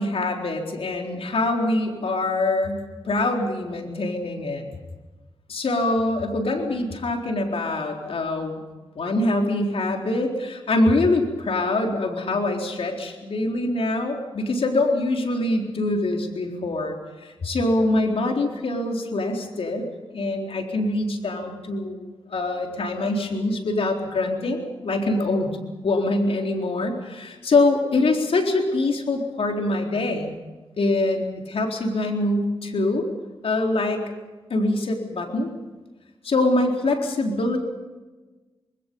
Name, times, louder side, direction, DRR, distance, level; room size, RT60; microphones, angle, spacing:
voice 1, 0.0-4.7 5.5-8.6 8.9-19.9 20.1-25.6 25.8-30.3 30.8-33.0 33.4-34.1 34.5-35.5 36.2-37.6, left 2 dB, 65° left, 2 dB, 4.0 m, -24 dB
27.0 x 21.0 x 5.5 m, 1.2 s
cardioid pair, 50°, 11 cm